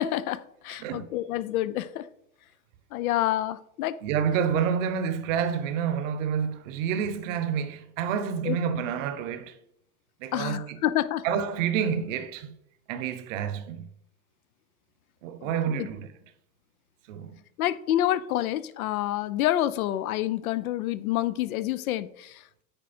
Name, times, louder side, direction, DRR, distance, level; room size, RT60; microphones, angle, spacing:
voice 1, 0.0-2.1 2.9-4.0 8.4-8.6 10.3-11.3 15.4-15.9 17.6-22.6, left 13 dB, 70° left, 0.7 m, -28 dB
voice 2, 0.8-1.2 4.0-9.6 10.2-10.8 11.2-12.5 12.9-13.9 15.2-16.1 17.1-17.4, right 7 dB, 55° right, 1.0 m, -28 dB
8.9 x 4.9 x 4.4 m
hypercardioid pair, 125°, 45 cm